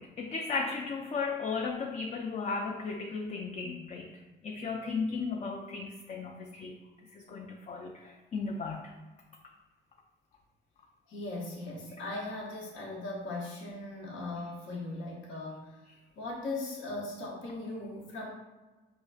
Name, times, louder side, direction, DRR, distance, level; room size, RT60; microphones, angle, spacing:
voice 1, 0.0-6.8 7.1-8.9, left 4 dB, 35° left, 1 dB, 0.4 m, -35 dB
voice 2, 11.1-15.8 16.2-18.3, left 2 dB, 75° left, -4 dB, 0.9 m, -38 dB
4.9 x 2.4 x 2.4 m, 1.2 s
cardioid pair, 90°, 20 cm